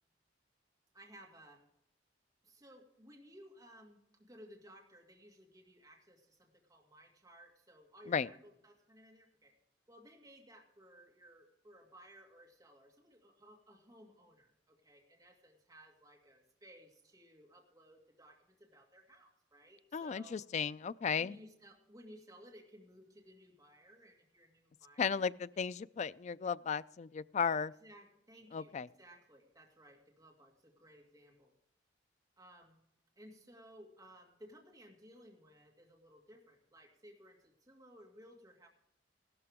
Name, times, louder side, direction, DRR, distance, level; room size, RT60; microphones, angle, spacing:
voice 1, 0.9-1.6 2.4-9.5 9.9-20.4 21.2-25.2 27.8-31.5 32.4-32.8 33.2-38.7, equal, 20° right, 0 dB, 2.1 m, -59 dB
voice 2, 19.9-21.4 25.0-27.7 28.5-28.9, left 6 dB, 40° left, 17 dB, 0.3 m, -35 dB
15.5 x 12.5 x 3.6 m, 0.80 s
head